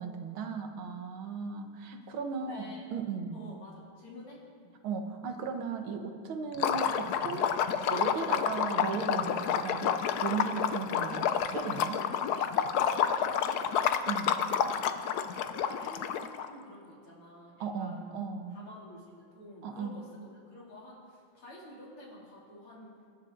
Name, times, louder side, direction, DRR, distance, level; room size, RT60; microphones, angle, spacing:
voice 1, 0.0-3.5 4.8-7.5 7.9-12.1 14.1-14.4 17.6-18.6 19.6-20.0, right 5 dB, 75° right, 5 dB, 2.0 m, -36 dB
voice 2, 2.0-2.8 3.3-4.7 13.3-13.8 14.3-18.1 18.5-23.1, left 1 dB, 90° left, -4 dB, 4.1 m, -50 dB
Liquid, 6.5-16.5, left 8 dB, 70° left, 0.9 m, -29 dB
24.5 x 11.0 x 3.8 m, 2.1 s
omnidirectional pair, 2.3 m